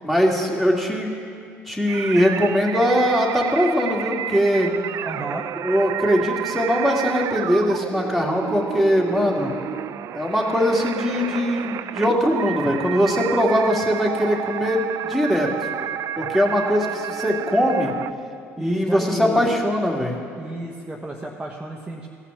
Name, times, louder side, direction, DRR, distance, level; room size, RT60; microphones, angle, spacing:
voice 1, 0.0-1.1 1.7-4.7 5.6-9.5 10.1-15.5 16.2-17.9 18.6-20.2, equal, 5° left, -1 dB, 2.3 m, -21 dB
sound 1, 1.9-18.1, right 11 dB, 55° right, 0.4 m, -31 dB
voice 2, 5.0-5.4 18.6-19.5 20.3-22.1, right 1 dB, 15° right, -1 dB, 1.1 m, -31 dB
15.5 x 5.8 x 7.1 m, 2.3 s
hypercardioid pair, 65°, 6 cm